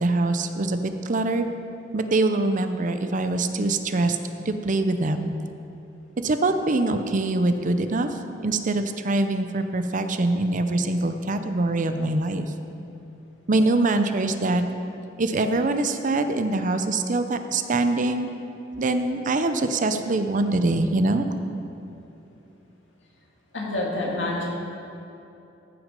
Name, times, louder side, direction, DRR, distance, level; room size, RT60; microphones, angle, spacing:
voice 1, 0.0-1.5 1.9-4.2 4.5-5.3 6.2-12.5 13.5-14.6 15.2-18.3 18.8-21.3, right 2 dB, 45° right, 8 dB, 0.6 m, -24 dB
voice 2, 23.5-24.5, left 2 dB, 80° left, -3 dB, 2.2 m, -27 dB
14.5 x 6.1 x 5.2 m, 2.9 s
head